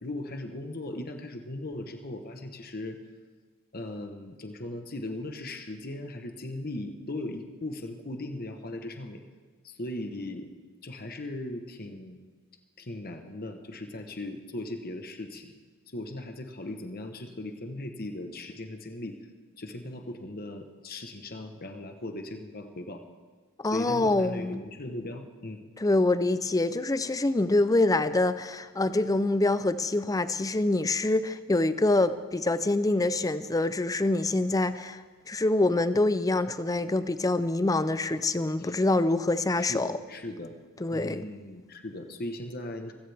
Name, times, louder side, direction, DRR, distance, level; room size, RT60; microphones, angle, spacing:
voice 1, 0.0-3.0 3.7-9.2 9.6-10.5 10.8-12.2 12.8-15.5 15.9-19.3 19.6-23.0 23.7-25.6 38.6-38.7 39.6-40.5 40.9-42.9, left 1 dB, 45° left, 5 dB, 1.1 m, -38 dB
voice 2, 23.6-24.6 25.8-35.0 35.3-40.0 40.8-41.3, left 2 dB, 15° left, 13 dB, 0.5 m, -25 dB
24.0 x 16.0 x 3.5 m, 1.4 s
head